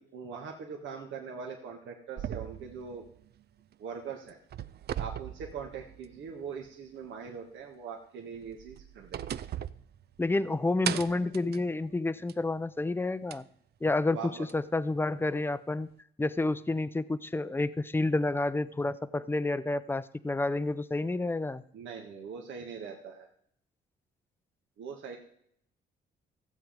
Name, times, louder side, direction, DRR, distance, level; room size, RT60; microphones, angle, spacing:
voice 1, 0.0-3.0 3.8-4.4 5.0-9.4 14.1-14.5 21.7-23.3 24.8-25.2, right 6 dB, 75° right, 1 dB, 1.6 m, -42 dB
sound 1, 2.2-3.9 4.3-6.3 6.6-6.7 8.4-10.5 10.8-12.5 13.3-13.4 14.5-14.6, right 10 dB, 55° right, 0.5 m, -39 dB
voice 2, 10.2-13.4 13.8-15.9 16.2-21.6, left 2 dB, 10° left, 15 dB, 0.6 m, -29 dB
15.0 x 7.6 x 5.1 m, 0.67 s
cardioid pair, 90°, 20 cm